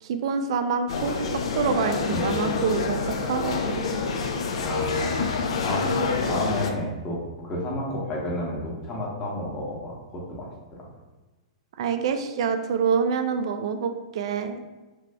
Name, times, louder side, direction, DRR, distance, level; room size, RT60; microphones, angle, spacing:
voice 1, 0.0-3.8 11.8-14.6, right 6 dB, 60° right, 7 dB, 0.4 m, -27 dB
sound 1, 0.9-6.7, left 4 dB, 70° left, 0.4 m, -27 dB
voice 2, 4.6-10.5 10.8-10.9, left 1 dB, 25° left, -4 dB, 0.9 m, -31 dB
3.4 x 2.4 x 3.3 m, 1.2 s
hypercardioid pair, 115°, 3 cm